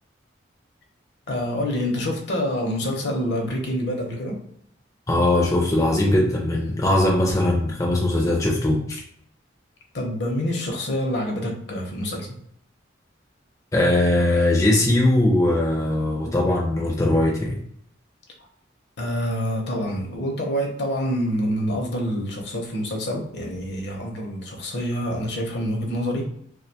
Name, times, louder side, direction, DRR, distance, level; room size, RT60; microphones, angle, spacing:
voice 1, 1.3-4.4 9.9-12.4 19.0-26.3, equal, 60° left, 2 dB, 0.6 m, -27 dB
voice 2, 5.1-9.0 13.7-17.6, left 1 dB, 15° left, -2 dB, 0.4 m, -20 dB
2.3 x 2.2 x 2.7 m, 0.67 s
head